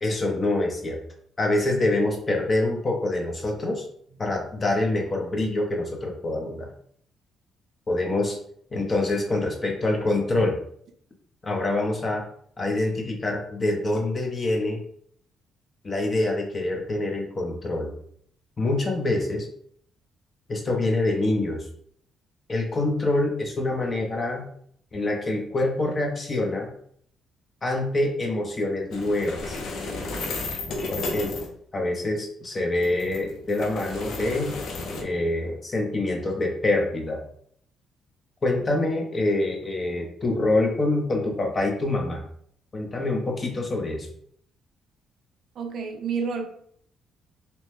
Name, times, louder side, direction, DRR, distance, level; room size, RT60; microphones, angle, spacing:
voice 1, 0.0-1.0 1.4-3.8 4.2-6.7 7.9-8.4 8.7-10.6 11.4-12.2 12.6-14.8 15.8-17.9 18.6-19.5 20.5-21.6 22.5-24.5 24.9-26.7 27.6-29.6 30.9-34.6 35.0-37.2 38.4-42.2 42.7-44.1, left 2 dB, 35° left, 2 dB, 0.7 m, -25 dB
sound 1, 28.9-31.5 32.8-35.0, left 3 dB, 75° left, 0.5 m, -33 dB
voice 2, 45.6-46.5, right 5 dB, 65° right, 5 dB, 0.4 m, -29 dB
2.9 x 2.1 x 3.1 m, 0.62 s
cardioid pair, 90°, 0 cm